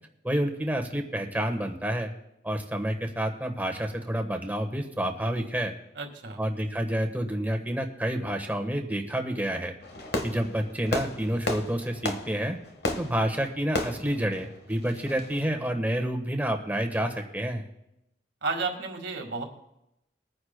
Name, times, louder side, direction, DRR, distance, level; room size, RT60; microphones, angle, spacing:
voice 1, 0.2-2.1 2.4-5.7 6.4-9.7 10.2-12.6 13.0-17.6, right 1 dB, 10° right, 4 dB, 1.2 m, -29 dB
voice 2, 5.9-6.4 18.4-19.4, right 4 dB, 80° right, 3 dB, 1.8 m, -32 dB
Fireworks, 9.8-15.4, left 1 dB, 65° left, 1.3 m, -34 dB
22.5 x 9.6 x 2.2 m, 0.85 s
head